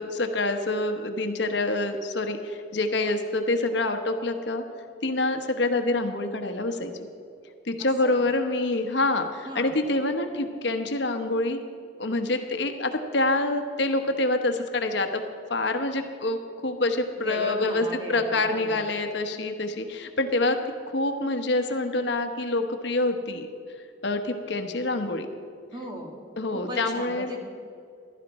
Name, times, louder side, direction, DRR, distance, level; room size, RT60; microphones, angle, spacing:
voice 1, 0.0-4.6 5.0-7.1 7.7-11.6 12.0-15.2 15.5-20.6 20.9-23.5 24.0-25.3 26.4-27.3, left 2 dB, 70° left, 6 dB, 1.0 m, -26 dB
voice 2, 7.8-8.2 9.4-9.8 17.2-18.9 25.7-26.2 26.5-27.4, equal, 20° right, 1 dB, 1.7 m, -37 dB
15.5 x 12.0 x 4.2 m, 2.5 s
head